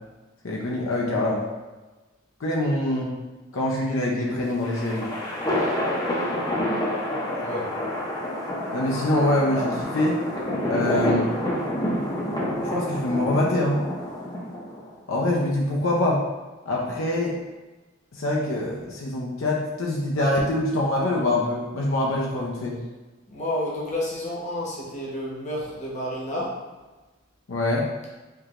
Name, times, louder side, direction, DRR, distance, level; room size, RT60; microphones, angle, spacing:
voice 1, 0.4-1.4 2.4-3.1 3.5-5.1 8.7-10.2 10.7-11.3 12.6-13.8 15.1-16.2 16.7-17.3 18.1-22.8 27.5-27.9, left 1 dB, 75° left, -3 dB, 0.6 m, -24 dB
sound 1, 4.4-14.9, left 1 dB, 20° left, 0.6 m, -28 dB
voice 2, 7.4-7.7 23.3-26.6, left 1 dB, 35° left, -5 dB, 1.0 m, -30 dB
4.7 x 2.9 x 2.4 m, 1.2 s
head